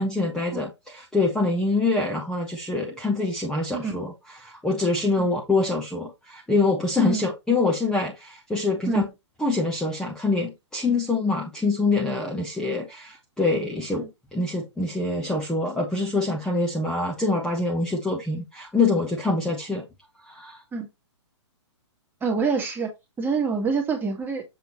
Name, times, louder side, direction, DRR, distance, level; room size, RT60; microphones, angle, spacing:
voice 1, 0.0-4.1 4.4-9.1 9.4-19.8 20.2-20.6, left 3 dB, 5° left, 1.2 m, -25 dB
voice 2, 22.2-22.9 23.2-24.4, right 5 dB, 15° right, 2.1 m, -26 dB
7.3 x 3.7 x 4.4 m
hypercardioid pair, 130°, 15 cm